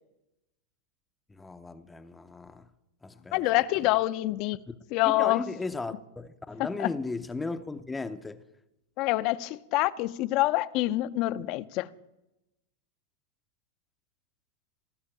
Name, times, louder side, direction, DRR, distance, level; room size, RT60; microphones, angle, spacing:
voice 1, 1.4-2.7 3.0-3.4 4.7-4.8 5.0-8.4, left 3 dB, 10° left, 0.7 m, -36 dB
voice 2, 3.3-4.6 4.9-5.4 6.6-6.9 9.0-11.9, left 17 dB, 50° left, 0.6 m, -26 dB
18.5 x 6.4 x 8.9 m
hypercardioid pair, 115°, 0 cm